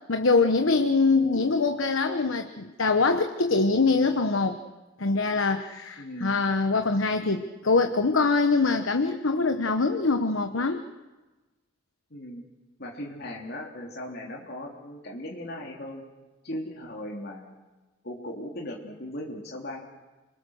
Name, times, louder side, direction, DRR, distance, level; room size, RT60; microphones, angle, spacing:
voice 1, 0.1-4.6 5.0-10.8, left 3 dB, 85° left, 7 dB, 1.1 m, -24 dB
voice 2, 6.0-6.5 12.1-12.4 12.8-16.0 16.4-17.6 18.0-19.8, left 1 dB, 55° left, -1 dB, 3.2 m, -38 dB
29.5 x 21.5 x 6.5 m, 1.2 s
head